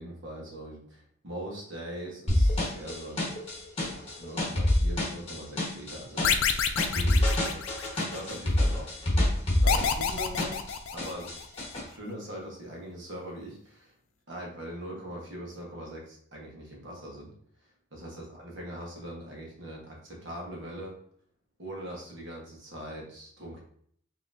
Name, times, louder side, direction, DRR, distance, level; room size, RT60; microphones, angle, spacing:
voice 1, 0.0-3.3 3.9-8.9 9.6-10.6 10.9-11.3 11.7-13.9 14.3-17.3 17.9-21.0 21.6-23.6, right 1 dB, 60° right, -2 dB, 1.3 m, -41 dB
sound 1, 2.3-10.7 11.0-11.8, left 1 dB, 30° left, 1.3 m, -26 dB
sound 2, 6.2-8.2 9.7-11.5, left 7 dB, 75° left, 0.4 m, -28 dB
5.4 x 3.0 x 2.7 m, 0.63 s
head